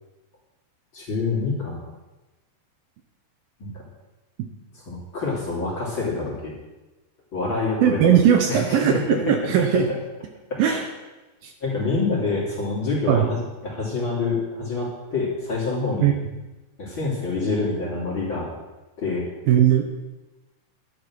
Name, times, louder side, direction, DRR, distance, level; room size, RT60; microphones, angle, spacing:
voice 1, 0.9-1.8 3.6-3.8 4.9-6.5 7.3-8.1 8.5-9.3 10.5-10.8 11.6-16.1 16.8-18.5 19.0-19.2, left 3 dB, 30° left, -4 dB, 3.4 m, -26 dB
voice 2, 7.8-9.9 10.6-10.8 11.4-11.5 13.1-13.3 16.0-16.1 19.5-19.9, right 9 dB, 70° right, 4 dB, 2.5 m, -18 dB
11.5 x 11.0 x 6.2 m, 1.1 s
omnidirectional pair, 4.7 m